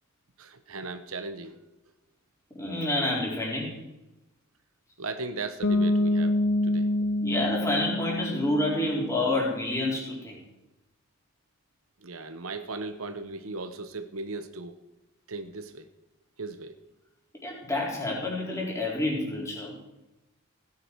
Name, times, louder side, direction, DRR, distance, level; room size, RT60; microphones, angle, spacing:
voice 1, 0.4-1.6 5.0-6.9 12.0-14.8 15.3-15.9 16.4-16.7, right 3 dB, 75° right, 9 dB, 1.0 m, -37 dB
voice 2, 2.5-3.8 7.2-10.4 17.4-19.8, left 2 dB, 15° left, -3 dB, 4.2 m, -28 dB
Bass guitar, 5.6-9.3, left 1 dB, 55° left, 1.0 m, -26 dB
16.5 x 9.8 x 4.7 m, 0.96 s
head